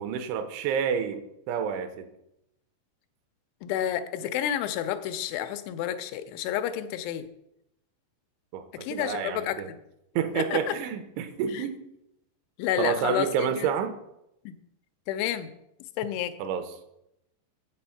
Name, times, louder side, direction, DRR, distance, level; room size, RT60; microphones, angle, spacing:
voice 1, 0.0-2.1 8.5-9.7 10.2-11.8 12.8-14.0 16.4-16.7, right 7 dB, 85° right, 9 dB, 3.2 m, -29 dB
voice 2, 3.6-7.3 8.8-9.6 10.4-10.8 11.5-11.6 12.6-13.3 13.6-13.7 14.5-14.6 15.1-15.5 16.0-16.3, left 11 dB, 85° left, 9 dB, 2.9 m, -30 dB
7.7 x 7.5 x 5.7 m, 0.83 s
omnidirectional pair, 5.3 m